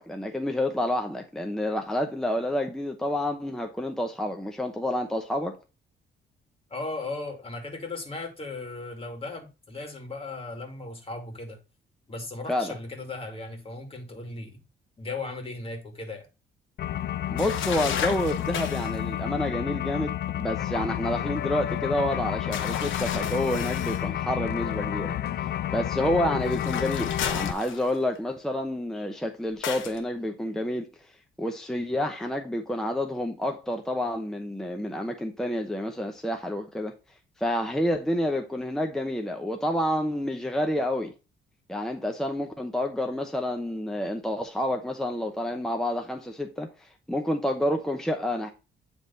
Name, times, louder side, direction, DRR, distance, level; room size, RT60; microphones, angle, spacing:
voice 1, 0.0-5.6 12.5-12.8 17.3-31.1 31.4-36.9 37.4-41.1 41.7-48.5, left 1 dB, ahead, 0.8 m, -29 dB
voice 2, 6.7-11.6 12.1-14.6 15.0-16.3, left 3 dB, 30° left, 2.3 m, -37 dB
sound 1, 16.8-27.5, left 11 dB, 55° left, 0.5 m, -30 dB
sound 2, 17.4-19.0 22.5-24.1 26.4-28.2 29.6-30.0, left 8 dB, 80° left, 1.1 m, -33 dB
9.1 x 3.5 x 4.0 m
cardioid pair, 90°, 20 cm